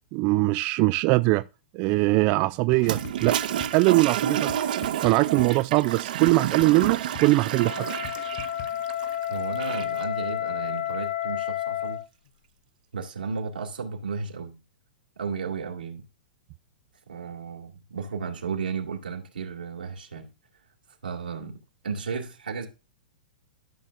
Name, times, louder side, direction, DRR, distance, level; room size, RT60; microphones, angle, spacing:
voice 1, 0.1-1.4 1.7-3.4 3.7-4.5 5.0-8.1, right 21 dB, 40° right, 0.3 m, -22 dB
sound 1, 2.7-3.8 4.5-5.6 6.3-7.4 8.0-8.7, left 6 dB, 50° left, 2.3 m, -41 dB
Toilet flush, 2.8-10.0, right 10 dB, 65° right, 0.9 m, -30 dB
Wind instrument woodwind instrument, 7.4-12.1, left 11 dB, 70° left, 0.8 m, -31 dB
voice 2, 9.3-12.0 12.9-14.6 15.2-16.0 17.1-20.3 21.0-22.7, right 5 dB, 90° right, 2.6 m, -34 dB
13.0 x 6.2 x 2.6 m
hypercardioid pair, 115°, 5 cm